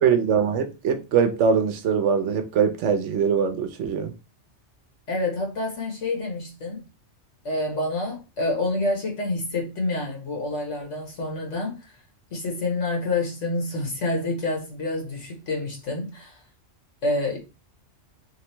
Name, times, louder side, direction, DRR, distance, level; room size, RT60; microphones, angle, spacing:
voice 1, 0.0-4.1, right 6 dB, 75° right, 1.0 m, -22 dB
voice 2, 5.1-6.8 7.4-11.9 12.3-16.4 17.0-17.4, left 2 dB, 80° left, 1.7 m, -28 dB
3.3 x 2.9 x 3.3 m
omnidirectional pair, 1.2 m